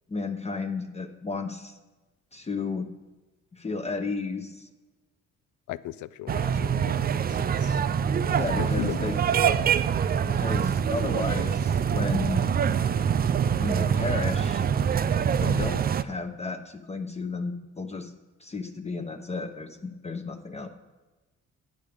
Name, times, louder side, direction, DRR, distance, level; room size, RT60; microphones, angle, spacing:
voice 1, 0.1-1.8 2.3-2.9 3.5-4.7 8.3-9.2 10.3-12.4 13.6-14.7 15.2-18.1 18.4-20.7, left 3 dB, 20° left, 6 dB, 0.8 m, -33 dB
voice 2, 5.7-7.8 8.6-9.2, left 15 dB, 75° left, 18 dB, 0.5 m, -37 dB
sound 1, 6.3-16.0, right 7 dB, 30° right, 0.4 m, -25 dB
9.2 x 6.9 x 5.1 m, 1.2 s
cardioid pair, 90°, 30 cm